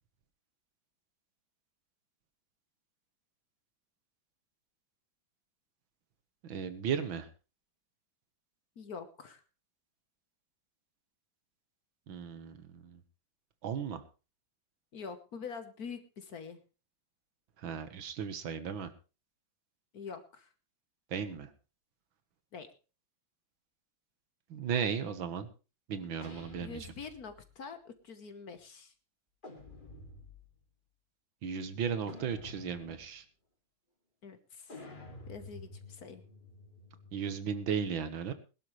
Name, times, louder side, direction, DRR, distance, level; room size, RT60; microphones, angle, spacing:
voice 1, 6.4-7.3 12.1-13.0 13.6-14.0 17.6-18.9 21.1-21.5 24.5-25.5 25.9-26.9 31.4-33.2 37.1-38.3, right 7 dB, 85° right, 11 dB, 2.1 m, -35 dB
voice 2, 8.8-9.4 14.9-16.6 19.9-20.5 22.5-22.7 26.6-28.9 34.2-34.8 35.3-36.2, left 5 dB, 55° left, 10 dB, 1.6 m, -45 dB
sound 1, 26.2-27.5 29.4-30.5 32.1-33.1 34.7-37.4, left 2 dB, 25° left, 2.7 m, -50 dB
21.0 x 11.5 x 3.2 m, 0.32 s
omnidirectional pair, 2.1 m